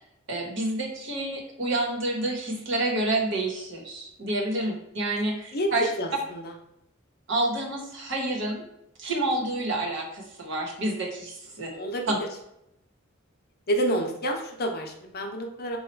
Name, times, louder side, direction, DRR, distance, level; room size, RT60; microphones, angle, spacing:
voice 1, 0.3-5.9 7.3-8.6 9.0-11.7 12.1-12.2, right 2 dB, 65° right, 0 dB, 1.1 m, -28 dB
voice 2, 6.0-6.5 11.7-12.0 13.7-15.8, equal, 50° left, 3 dB, 0.6 m, -29 dB
4.1 x 2.3 x 4.4 m, 0.80 s
head